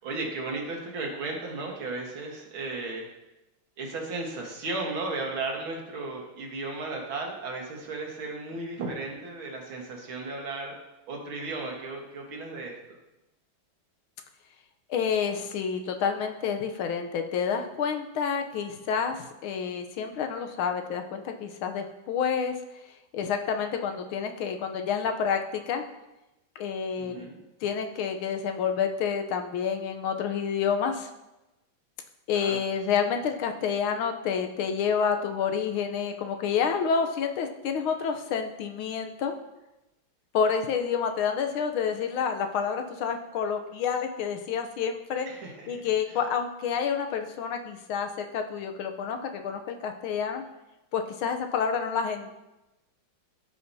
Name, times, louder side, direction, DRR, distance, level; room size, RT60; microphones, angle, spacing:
voice 1, 0.0-3.1 3.8-10.7 11.1-12.7 27.0-27.4 32.3-32.6 45.3-45.8, right 3 dB, 80° right, 0 dB, 2.3 m, -35 dB
voice 2, 14.9-22.5 23.1-25.8 26.6-27.3 27.6-31.1 32.3-39.3 40.3-45.3 45.7-50.4 50.9-52.4, left 6 dB, 90° left, 5 dB, 1.7 m, -29 dB
14.5 x 5.8 x 2.7 m, 0.97 s
omnidirectional pair, 2.2 m